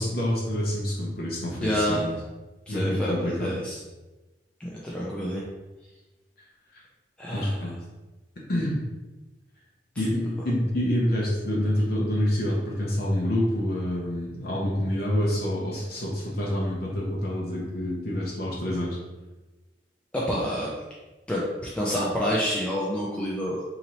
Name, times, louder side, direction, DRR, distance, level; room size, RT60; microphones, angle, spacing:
voice 1, 0.0-2.1 2.7-3.5 6.7-6.8 7.3-7.8 8.5-8.8 10.0-19.0, left 1 dB, 60° left, -4 dB, 0.7 m, -27 dB
voice 2, 1.6-2.0 2.7-3.8 4.6-5.4 7.2-7.6 10.0-10.1 20.1-20.7 21.3-21.4 21.7-23.6, equal, 5° left, -6 dB, 0.4 m, -28 dB
3.9 x 2.9 x 3.0 m, 1.1 s
head